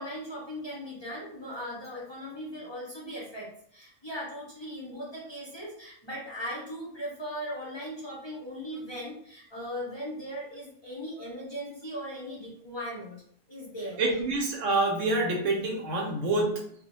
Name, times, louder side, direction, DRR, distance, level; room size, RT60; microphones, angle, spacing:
voice 1, 0.0-13.2 13.5-14.0, equal, 35° left, -6 dB, 0.4 m, -38 dB
voice 2, 14.0-16.8, right 2 dB, 70° right, 0 dB, 0.9 m, -27 dB
2.3 x 2.1 x 2.9 m, 0.65 s
omnidirectional pair, 1.4 m